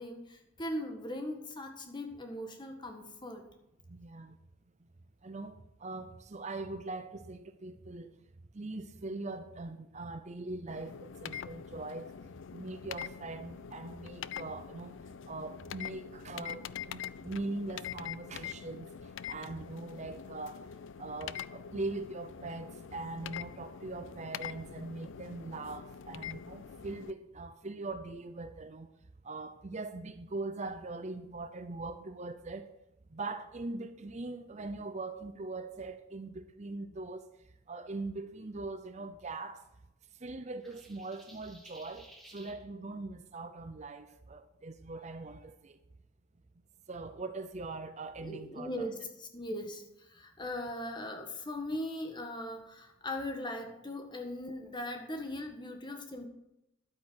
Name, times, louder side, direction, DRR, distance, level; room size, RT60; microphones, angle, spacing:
voice 1, 0.0-3.4 48.2-56.3, left 1 dB, 20° left, 1.5 m, -39 dB
voice 2, 3.9-4.4 5.2-8.1 8.5-12.1 12.5-20.6 21.0-28.9 29.2-32.7 33.1-37.3 37.7-39.6 40.2-45.8 46.9-48.9, right 2 dB, 35° right, 0.6 m, -41 dB
sound 1, 10.7-27.1, left 8 dB, 60° left, 0.4 m, -44 dB
sound 2, 40.6-42.6, right 1 dB, ahead, 1.9 m, -55 dB
12.0 x 8.5 x 6.2 m
head